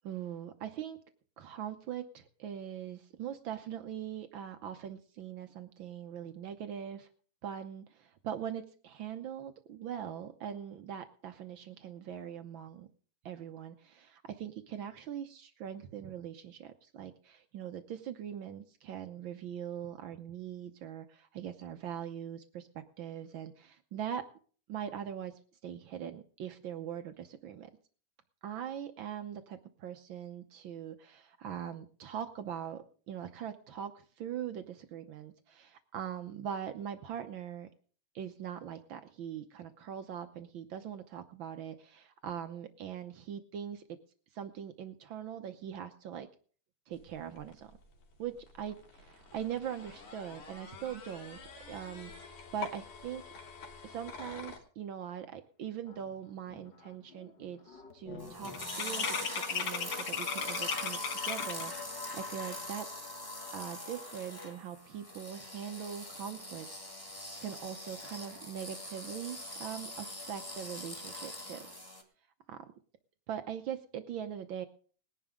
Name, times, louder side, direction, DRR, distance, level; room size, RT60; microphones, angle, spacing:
voice 1, 0.0-1.0 1.4-7.1 7.4-12.9 13.2-22.7 23.0-24.2 24.7-25.3 25.6-27.7 28.4-33.9 34.2-37.7 38.1-43.8 44.3-46.3 46.9-47.7 48.2-51.4 51.7-53.2 53.8-58.5 58.8-62.9 63.5-66.7 67.0-71.7 72.5-72.7 73.3-74.7, right 9 dB, 85° right, 8 dB, 1.0 m, -41 dB
sound 1, 46.9-54.6, left 5 dB, 80° left, 4.0 m, -48 dB
sound 2, 56.1-56.2 56.5-56.9 57.1-61.8, left 7 dB, 60° left, 1.1 m, -37 dB
sound 3, 58.2-72.0, left 1 dB, 10° left, 1.7 m, -42 dB
20.0 x 11.0 x 3.7 m, 0.42 s
omnidirectional pair, 3.4 m